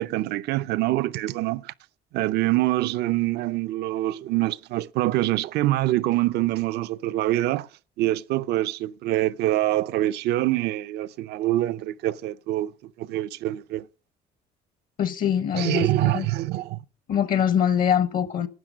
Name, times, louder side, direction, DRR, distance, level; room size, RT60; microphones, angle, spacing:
voice 1, 0.0-1.7 2.1-7.7 8.0-13.9 15.5-16.8, right 16 dB, 75° right, 0.5 m, -25 dB
voice 2, 15.0-16.3 17.1-18.5, left 9 dB, 55° left, 0.9 m, -23 dB
12.5 x 8.6 x 5.1 m
cardioid pair, 110°, 17 cm